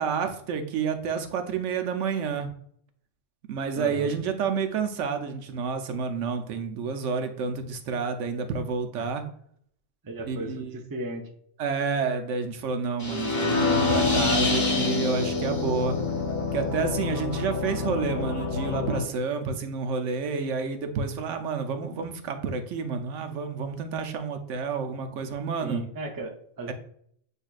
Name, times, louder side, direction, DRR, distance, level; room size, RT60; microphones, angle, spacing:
voice 1, 0.0-2.5 3.5-9.2 10.3-10.8 11.6-16.0 16.5-25.8 26.7-26.8, right 5 dB, 85° right, 7 dB, 1.0 m, -29 dB
voice 2, 3.8-4.1 9.0-9.1 10.0-11.3 25.6-26.7, right 2 dB, 30° right, 3 dB, 0.4 m, -36 dB
sound 1, 13.0-19.0, left 4 dB, 60° left, 1.6 m, -26 dB
8.0 x 2.7 x 2.4 m, 0.63 s
omnidirectional pair, 1.2 m